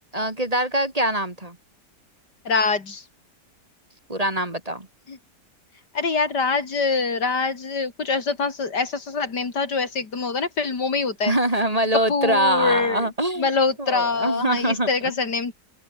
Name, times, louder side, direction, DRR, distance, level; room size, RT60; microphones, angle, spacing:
voice 1, 0.1-1.6 4.1-4.9 11.2-13.5 13.8-15.1, right 1 dB, 20° right, 2.5 m, -23 dB
voice 2, 2.5-3.0 5.1-5.2 5.9-11.3 11.9-13.1 13.4-15.5, left 4 dB, 80° left, 3.7 m, -24 dB
open air
omnidirectional pair, 1.8 m